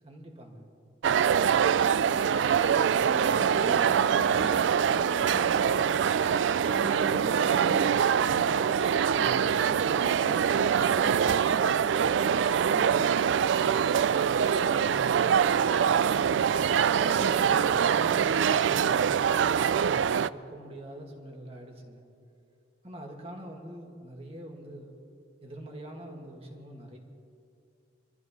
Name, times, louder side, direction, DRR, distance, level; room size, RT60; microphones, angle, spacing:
voice 1, 0.0-0.7 9.1-9.7 14.7-16.4 16.9-22.1 22.8-25.0 25.4-27.0, right 1 dB, 35° right, 1 dB, 2.0 m, -44 dB
sound 1, 1.0-20.3, right 7 dB, 85° right, 0.3 m, -24 dB
voice 2, 1.8-6.0 6.6-8.8 9.1-13.7, left 1 dB, 45° left, 7 dB, 0.8 m, -43 dB
26.0 x 14.5 x 3.2 m, 2.4 s
head